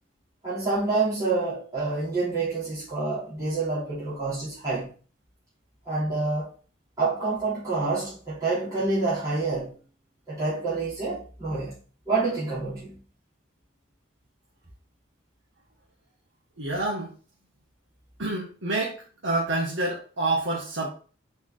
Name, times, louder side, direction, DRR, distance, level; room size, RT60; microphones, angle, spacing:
voice 1, 0.4-4.9 5.8-6.5 7.0-9.7 10.3-11.8 12.1-12.9, right 3 dB, 20° right, 3.2 m, -27 dB
voice 2, 16.6-17.1 18.2-19.0 19.2-20.9, right 2 dB, 65° right, 1.3 m, -27 dB
5.9 x 4.4 x 3.8 m
head